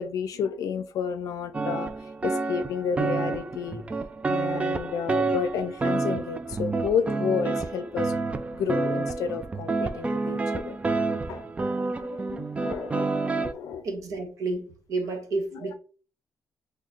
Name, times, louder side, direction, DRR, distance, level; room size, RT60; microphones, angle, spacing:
voice 1, 0.0-1.9 2.2-3.8 4.3-8.2 8.5-10.8 11.3-11.5 11.8-13.9, left 7 dB, 75° left, 0.5 m, -31 dB
sound 1, 1.5-13.5, right 3 dB, 20° right, 0.3 m, -29 dB
voice 2, 13.8-15.7, right 3 dB, 65° right, 1.0 m, -31 dB
4.1 x 3.2 x 2.4 m
cardioid pair, 125°, 6 cm